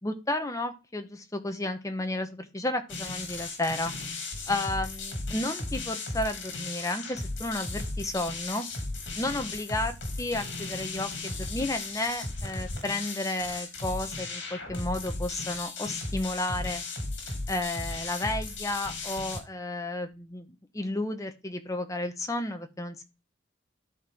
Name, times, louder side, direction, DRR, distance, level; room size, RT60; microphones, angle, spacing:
voice 1, 0.0-3.9 4.5-8.6 9.2-16.8 17.5-20.5 20.7-23.0, left 2 dB, 20° left, 6 dB, 1.1 m, -32 dB
sound 1, 2.9-19.4, left 2 dB, 80° left, 2.8 m, -36 dB
12.5 x 4.5 x 3.6 m, 0.28 s
head